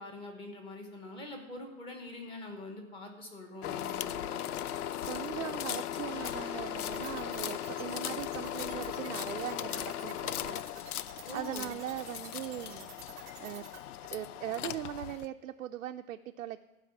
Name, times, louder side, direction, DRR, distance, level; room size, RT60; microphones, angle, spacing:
voice 1, 0.0-4.4 11.3-11.8, left 2 dB, 10° left, 4 dB, 0.9 m, -44 dB
sound 1, 3.6-15.3, left 11 dB, 85° left, 0.6 m, -38 dB
voice 2, 5.0-10.6 11.3-12.9 13.4-13.7 14.1-16.6, right 12 dB, 70° right, 6 dB, 0.5 m, -40 dB
sound 2, 6.1-11.4, left 2 dB, 65° left, 3.9 m, -54 dB
sound 3, 6.8-13.8, right 9 dB, 10° right, 0.5 m, -50 dB
13.5 x 4.9 x 7.1 m, 1.1 s
hypercardioid pair, 160°, 44 cm